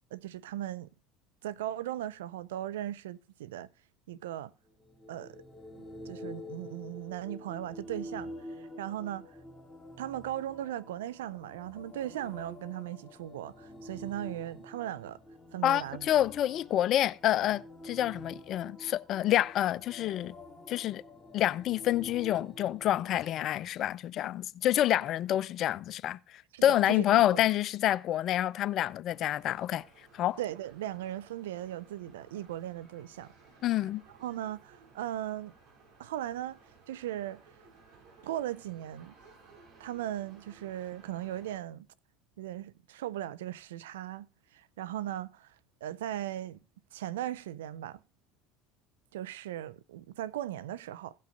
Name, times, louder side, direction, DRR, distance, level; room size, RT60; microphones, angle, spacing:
voice 1, 0.1-0.9 1.4-3.7 4.1-4.5 5.1-5.4 6.1-8.3 8.6-9.4 10.0-15.2 15.5-16.1 26.5-27.4 30.4-33.3 34.2-35.5 36.0-36.6 36.9-37.4 38.2-39.1 39.8-41.9 42.4-44.3 44.5-45.5 45.8-46.6 46.9-48.0 49.1-51.1, right 12 dB, 85° right, 0.6 m, -38 dB
sound 1, 4.7-23.5, left 1 dB, 5° left, 2.8 m, -48 dB
voice 2, 15.6-20.3 20.7-21.0 21.3-29.8 30.1-30.4 33.6-34.0, left 12 dB, 55° left, 0.5 m, -28 dB
sound 2, 29.1-41.6, right 4 dB, 60° right, 6.3 m, -59 dB
16.5 x 5.4 x 5.1 m
hypercardioid pair, 85°, 0 cm